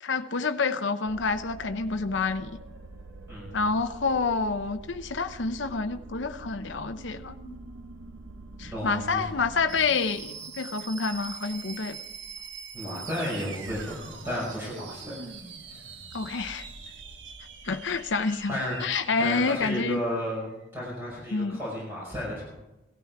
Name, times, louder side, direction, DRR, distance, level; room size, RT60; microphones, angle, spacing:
voice 1, 0.0-2.5 3.5-7.6 8.6-12.0 16.1-16.7 17.6-20.0 21.3-21.6, left 4 dB, 70° left, 8 dB, 0.7 m, -28 dB
sound 1, 1.1-20.4, right 4 dB, 70° right, 1.4 m, -44 dB
voice 2, 3.3-3.7 8.6-9.3 12.7-15.3 15.7-15.8 18.5-18.8 19.2-22.5, equal, 10° right, -6 dB, 5.4 m, -33 dB
17.5 x 13.5 x 4.7 m, 1.0 s
head